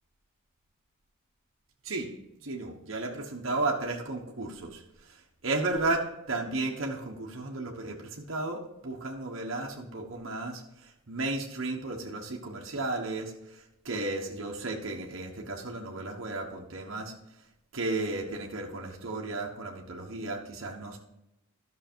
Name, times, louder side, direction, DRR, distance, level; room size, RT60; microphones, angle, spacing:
voice 1, 2.4-17.5 17.7-21.0, right 2 dB, 70° right, -1 dB, 1.3 m, -34 dB
12.0 x 6.3 x 4.5 m, 0.87 s
head